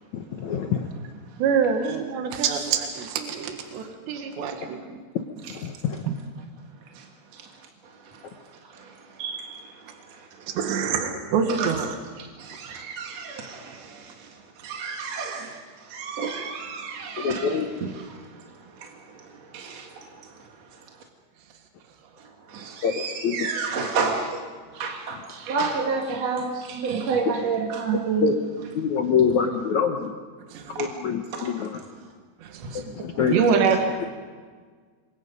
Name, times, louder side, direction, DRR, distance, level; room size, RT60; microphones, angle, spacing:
voice 1, 0.4-0.9 5.6-6.0 17.2-17.7 22.8-22.9 23.2-23.5 28.2-28.3 28.7-30.1 30.8-31.7 33.0-33.4, left 6 dB, 75° left, 4 dB, 1.7 m, -24 dB
voice 2, 1.4-5.0 6.0-6.2 10.5-12.0 23.5-23.6 26.7-27.1 27.9-28.0 30.5-30.8 32.4-32.8 33.3-33.9, right 6 dB, 80° right, 4 dB, 3.9 m, -25 dB
voice 3, 7.8-8.4 8.7-10.5 11.5-11.7 12.2-20.8 22.2-24.4 24.7-28.4 30.8-30.9 31.4-31.5 32.7-33.0 33.6-33.7, right 5 dB, 50° right, 1 dB, 2.3 m, -31 dB
28.0 x 24.0 x 5.4 m, 1.5 s
omnidirectional pair, 5.0 m